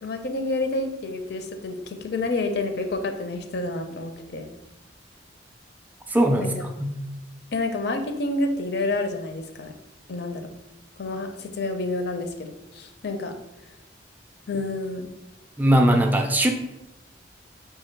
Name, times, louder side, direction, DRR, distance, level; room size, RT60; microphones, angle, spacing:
voice 1, 0.0-4.5 6.4-6.5 7.5-9.7 10.1-10.5 11.0-13.3 14.5-15.1, left 2 dB, 55° left, 6 dB, 0.5 m, -29 dB
voice 2, 6.1-7.0 15.6-16.5, right 1 dB, 10° right, 4 dB, 0.3 m, -20 dB
3.7 x 2.8 x 4.4 m, 0.93 s
head